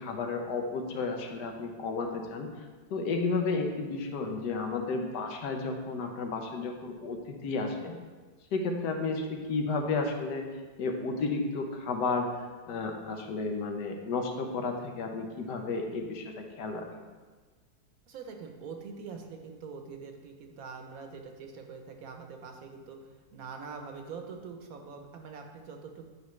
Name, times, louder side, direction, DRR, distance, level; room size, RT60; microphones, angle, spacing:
voice 1, 0.0-2.5 2.9-7.9 8.5-10.4 10.8-12.3 12.7-16.3 16.6-16.9, left 3 dB, 85° left, 3 dB, 1.4 m, -32 dB
voice 2, 18.1-26.1, right 5 dB, 65° right, 4 dB, 1.1 m, -44 dB
9.4 x 5.0 x 3.1 m, 1.4 s
omnidirectional pair, 1.8 m